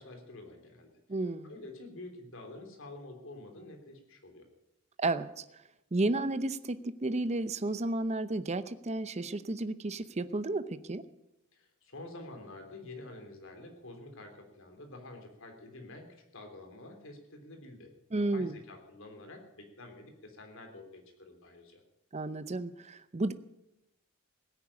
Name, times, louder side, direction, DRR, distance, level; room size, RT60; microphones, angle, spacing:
voice 1, 0.0-0.9 1.4-4.5 11.5-21.8, left 2 dB, 65° left, 4 dB, 3.3 m, -48 dB
voice 2, 1.1-1.5 5.0-5.4 5.9-11.0 18.1-18.6 22.1-23.3, right 2 dB, 30° right, 12 dB, 0.7 m, -32 dB
17.0 x 9.9 x 8.5 m, 0.89 s
head